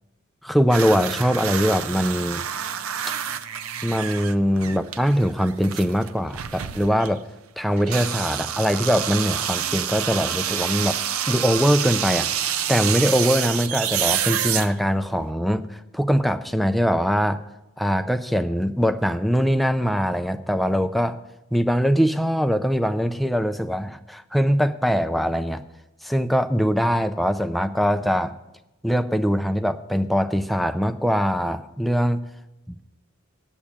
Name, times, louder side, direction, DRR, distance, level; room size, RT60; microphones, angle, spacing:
voice 1, 0.4-2.4 3.8-7.2 7.6-11.0 11.3-17.4 17.8-21.2 21.5-25.6 26.0-28.3 28.8-32.2, equal, ahead, 8 dB, 0.4 m, -22 dB
sound 1, 0.7-7.2 7.8-15.2, right 9 dB, 85° right, 0.5 m, -28 dB
8.6 x 7.2 x 8.7 m, 0.95 s
head